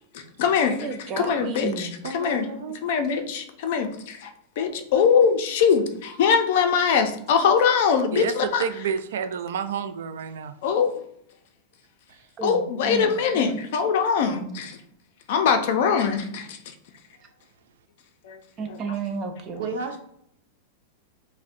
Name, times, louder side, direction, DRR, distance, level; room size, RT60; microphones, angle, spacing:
voice 1, 0.1-0.9 1.2-2.5 2.8-4.3 4.6-8.6 10.6-11.0 12.4-14.8 15.3-16.6 18.2-18.4 18.7-18.8, left 6 dB, 50° left, 6 dB, 0.5 m, -22 dB
voice 2, 0.8-2.0 12.4-13.6 18.6-19.7, right 4 dB, 20° right, 5 dB, 0.4 m, -32 dB
voice 3, 2.0-2.8 12.1-12.3 14.6-14.7 19.6-20.0, right 4 dB, 70° right, 4 dB, 0.8 m, -33 dB
voice 4, 8.6-10.5, right 7 dB, 85° right, 10 dB, 0.4 m, -29 dB
6.2 x 2.1 x 2.6 m, 0.72 s
supercardioid pair, 175°, 0 cm